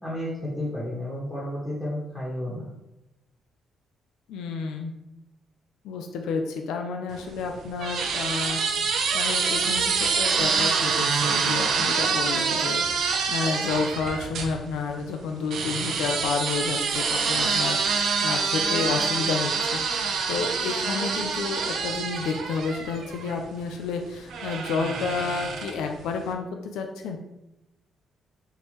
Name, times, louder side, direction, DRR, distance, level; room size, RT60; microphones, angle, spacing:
voice 1, 0.0-2.7, left 1 dB, 10° left, -7 dB, 1.5 m, -32 dB
voice 2, 4.3-4.9 5.8-27.2, left 5 dB, 85° left, 4 dB, 0.4 m, -30 dB
sound 1, 7.1-14.5 15.5-23.4 24.3-25.9, right 5 dB, 70° right, 0.5 m, -26 dB
4.5 x 3.3 x 3.0 m, 0.91 s
cardioid pair, 90°, 0 cm